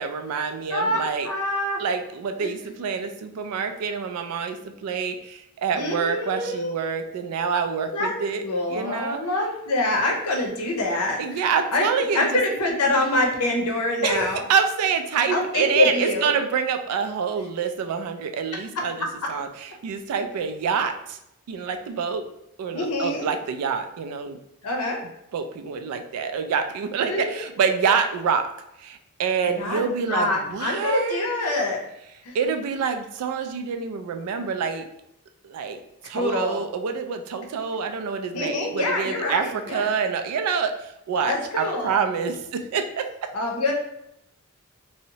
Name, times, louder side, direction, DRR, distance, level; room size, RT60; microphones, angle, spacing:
voice 1, 0.0-1.3 1.8-8.4 8.7-9.2 11.2-12.4 14.0-21.2 21.5-22.2 22.6-24.4 25.3-28.5 28.8-31.3 32.3-34.9 35.4-35.8 36.0-43.1, right 6 dB, 80° right, 7 dB, 0.3 m, -26 dB
voice 2, 1.2-1.8 2.4-2.5 5.7-6.7 7.9-8.1 8.4-11.9 12.1-14.4 15.3-16.3 22.7-23.3 24.6-25.0 27.1-27.2 29.4-31.8 32.2-32.3 36.1-36.6 38.3-39.9 41.2-41.9 43.3-43.7, left 2 dB, 85° left, 1 dB, 0.6 m, -25 dB
2.7 x 2.0 x 2.7 m, 0.80 s
head